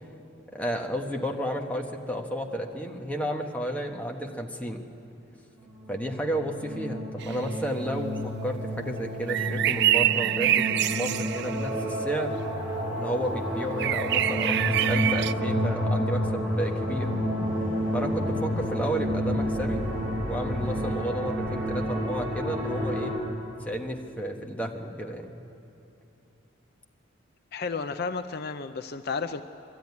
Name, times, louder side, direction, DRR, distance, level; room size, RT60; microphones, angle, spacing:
voice 1, 0.5-4.8 5.9-12.3 13.0-17.1 17.9-19.8 20.2-23.1 23.6-25.4, equal, 5° left, 1 dB, 1.3 m, -32 dB
sound 1, 5.6-23.2, equal, 10° right, 4.5 m, -30 dB
sound 2, 7.2-7.3 9.3-11.7 13.8-15.3, right 13 dB, 60° right, 0.4 m, -25 dB
voice 2, 27.5-29.4, left 4 dB, 50° left, 9 dB, 0.5 m, -32 dB
23.0 x 13.0 x 9.6 m, 2.9 s
head